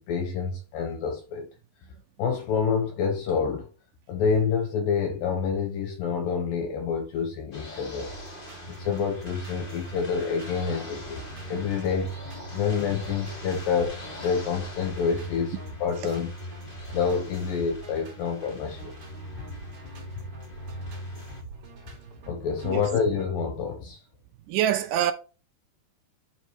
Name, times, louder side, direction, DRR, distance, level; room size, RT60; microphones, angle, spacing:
voice 1, 0.0-1.5 2.2-3.7 4.1-8.1 8.7-11.2 11.5-12.1 12.5-16.3 16.9-18.9 22.3-24.0, left 6 dB, 70° left, 2.4 m, -27 dB
sound 1, 7.5-21.4, left 1 dB, 35° left, 0.8 m, -41 dB
sound 2, 8.1-23.3, right 3 dB, 45° right, 4.7 m, -45 dB
voice 2, 24.5-25.1, right 11 dB, 90° right, 1.8 m, -24 dB
11.5 x 4.5 x 2.9 m
omnidirectional pair, 4.7 m